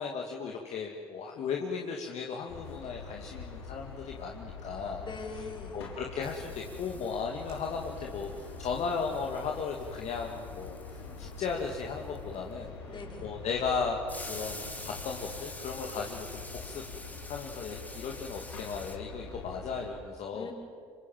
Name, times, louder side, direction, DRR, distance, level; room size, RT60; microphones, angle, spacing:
voice 1, 0.0-5.1 5.7-16.8 17.3-20.5, left 5 dB, 55° left, 0 dB, 2.6 m, -36 dB
sound 1, 2.5-19.9, left 5 dB, 90° left, 4.4 m, -45 dB
voice 2, 5.0-5.8 12.9-13.3 20.3-20.5, left 4 dB, 35° left, 2 dB, 5.6 m, -42 dB
sound 2, 5.7-5.9 6.2-12.5 14.1-19.0, left 2 dB, 10° left, 2.8 m, -47 dB
sound 3, 6.4-15.3, right 3 dB, 85° right, 7.0 m, -55 dB
28.5 x 26.0 x 7.6 m, 2.2 s
hypercardioid pair, 65°, 13 cm